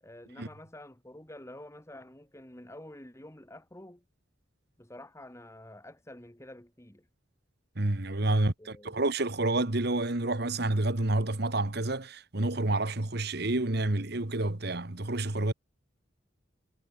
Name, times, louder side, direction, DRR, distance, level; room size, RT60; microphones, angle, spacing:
voice 1, 0.0-4.0 4.8-7.1 8.3-8.9, left 1 dB, 15° left, 2.1 m, -49 dB
voice 2, 7.8-15.5, right 2 dB, 55° right, 1.6 m, -29 dB
head